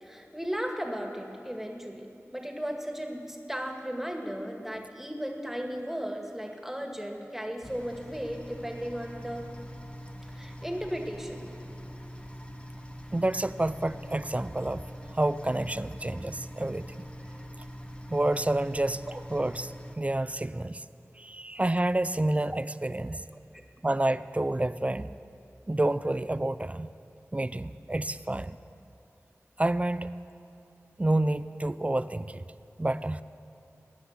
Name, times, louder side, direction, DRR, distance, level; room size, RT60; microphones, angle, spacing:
voice 1, 0.0-9.5 10.3-11.5, equal, 5° right, 3 dB, 1.9 m, -36 dB
sound 1, 7.6-20.0, equal, 20° left, 1.1 m, -43 dB
voice 2, 13.1-17.1 18.1-20.8 21.2-23.3 23.8-25.2 25.7-26.9 27.3-28.6 29.6-30.1 31.0-32.4 32.8-33.2, right 1 dB, 25° right, 14 dB, 0.4 m, -29 dB
20.5 x 9.8 x 7.3 m, 2.6 s
wide cardioid pair, 60°, 5 cm